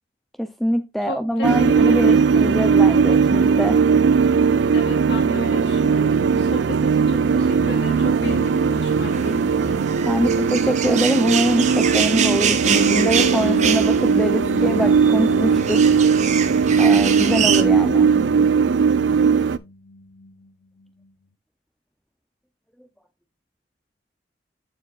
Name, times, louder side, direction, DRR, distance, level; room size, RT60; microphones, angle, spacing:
voice 1, 0.4-3.8 10.1-16.0 16.8-18.1, equal, ahead, 0.4 m, -24 dB
voice 2, 1.0-2.2 4.7-9.8, left 2 dB, 65° left, 2.2 m, -34 dB
sound 1, 1.4-19.6, right 6 dB, 80° right, 0.4 m, -18 dB
sound 2, 6.5-17.6, right 7 dB, 40° right, 0.7 m, -27 dB
sound 3, 12.6-20.5, equal, 85° left, 0.6 m, -32 dB
14.0 x 4.7 x 2.3 m
head